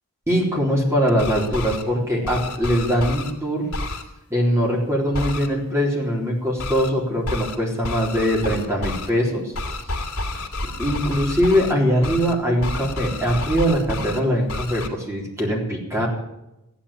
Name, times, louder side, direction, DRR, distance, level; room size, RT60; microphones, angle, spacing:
voice 1, 0.3-3.7 4.3-9.5 10.8-16.1, equal, 10° right, -2 dB, 3.8 m, -22 dB
sound 1, 1.1-1.8 2.2-3.3 3.7-4.0 5.1-5.5 6.6-6.9 7.2-7.6 7.8-9.1 9.5-11.7 12.0-12.3 12.6-14.2 14.5-14.9, left 2 dB, 80° left, 2.3 m, -29 dB
14.5 x 10.5 x 8.6 m, 0.90 s
head